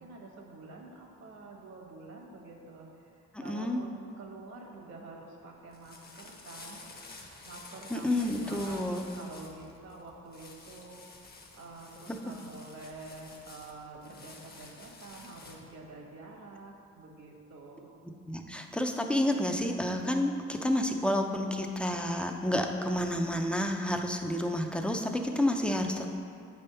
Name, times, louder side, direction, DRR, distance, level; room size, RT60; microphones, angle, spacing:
voice 1, 0.0-7.0 7.4-17.9, right 3 dB, 60° right, -1 dB, 1.3 m, -48 dB
voice 2, 3.3-3.8 7.9-9.0 12.1-12.2 18.3-26.1, left 1 dB, 5° left, 3 dB, 0.5 m, -30 dB
sound 1, 5.5-15.8, left 3 dB, 30° left, 0.9 m, -51 dB
7.5 x 3.5 x 5.5 m, 2.4 s
cardioid pair, 90°, 30 cm